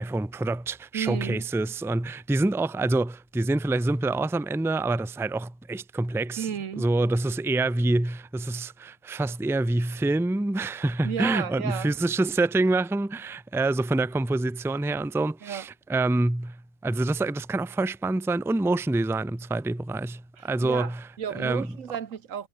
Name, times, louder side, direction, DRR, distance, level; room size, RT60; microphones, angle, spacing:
voice 1, 0.0-6.5 6.8-21.0 21.3-21.7, right 2 dB, 5° right, 0.6 m, -26 dB
voice 2, 0.9-1.4 6.4-6.8 11.0-11.9 15.4-15.6 20.4-22.5, right 8 dB, 80° right, 1.5 m, -33 dB
omnidirectional pair, 1.3 m